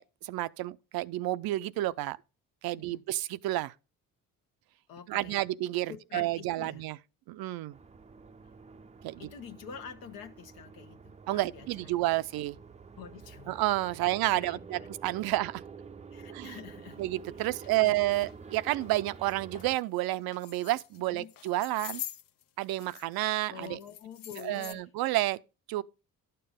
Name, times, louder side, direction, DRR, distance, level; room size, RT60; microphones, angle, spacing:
voice 1, 0.0-2.2 2.6-3.7 5.1-7.0 7.3-7.8 9.0-9.2 11.3-12.6 13.5-15.6 16.3-16.6 17.0-22.0 22.6-23.8 24.4-25.4 25.7-25.8, right 17 dB, 90° right, 0.5 m, -30 dB
voice 2, 4.9-5.4 5.9-6.8 9.2-11.9 13.0-13.6 13.9-14.9 16.1-17.0 17.4-17.5 17.8-18.3 21.1-21.3 23.5-24.9, left 7 dB, 85° left, 1.0 m, -47 dB
sound 1, 7.7-19.8, right 5 dB, 20° right, 0.4 m, -49 dB
sound 2, 16.9-17.0 17.5-17.7 18.2-18.3 18.8-19.0 19.3-19.7 20.3-21.0 21.3-23.2 23.4-24.7, left 11 dB, 65° left, 0.6 m, -44 dB
11.5 x 6.8 x 5.1 m
cardioid pair, 110°, 35 cm